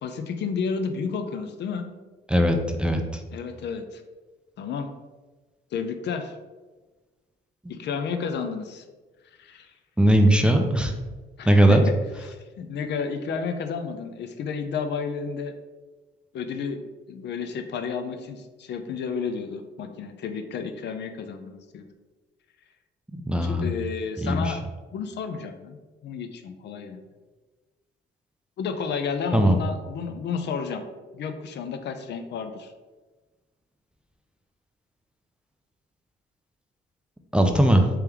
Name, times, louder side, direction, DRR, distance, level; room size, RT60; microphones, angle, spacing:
voice 1, 0.0-1.9 3.3-4.0 4.6-4.9 5.7-6.4 7.7-8.8 9.4-9.7 11.4-11.9 12.3-15.5 16.3-21.9 23.4-24.6 24.9-25.8 26.0-27.0 28.6-30.8 31.1-32.7, left 5 dB, 60° left, 7 dB, 0.4 m, -31 dB
voice 2, 2.3-3.2 7.6-7.7 10.0-10.9 11.5-11.8 23.1-23.7 24.2-24.6 29.3-29.6 37.3-37.9, right 1 dB, 5° right, 4 dB, 0.4 m, -19 dB
3.4 x 3.0 x 3.4 m, 1.2 s
cardioid pair, 90°, 20 cm